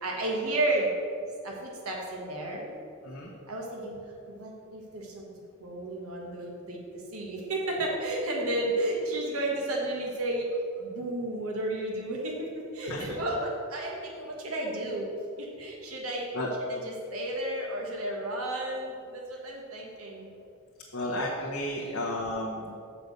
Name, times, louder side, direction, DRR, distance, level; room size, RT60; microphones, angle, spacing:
voice 1, 0.0-0.8 1.4-1.5 1.8-2.7 3.5-3.9 4.4-5.3 5.6-6.8 7.1-10.5 10.8-12.5 12.8-15.1 15.6-16.2 16.7-18.9 19.4-20.2, right 1 dB, 85° right, -2 dB, 1.5 m, -32 dB
voice 2, 12.8-13.1 16.3-16.5 20.9-22.7, left 1 dB, 80° left, -5 dB, 1.2 m, -33 dB
6.9 x 5.9 x 6.6 m, 2.4 s
head